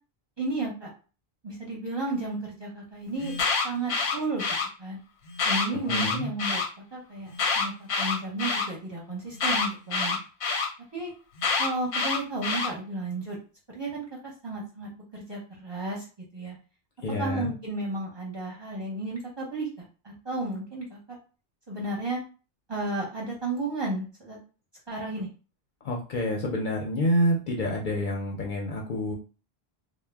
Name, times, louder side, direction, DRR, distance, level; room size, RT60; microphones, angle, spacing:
voice 1, 0.4-0.9 1.4-3.3 3.6-4.4 4.8-5.0 5.4-6.6 6.9-7.3 7.5-10.2 10.9-11.1 11.6-13.4 13.7-16.1 16.3-16.6 17.2-19.7 20.0-21.2 21.7-22.2 22.7-24.4 24.9-25.3, right 2 dB, 30° right, -3 dB, 0.7 m, -33 dB
Alarm, 3.2-4.7 5.3-6.7 7.3-8.7 9.4-10.7 11.4-12.7, left 4 dB, 90° left, 1.0 m, -26 dB
voice 2, 5.8-6.3 17.0-17.5 25.8-29.1, equal, 60° left, -1 dB, 0.6 m, -28 dB
2.1 x 2.0 x 3.3 m, 0.35 s
omnidirectional pair, 1.1 m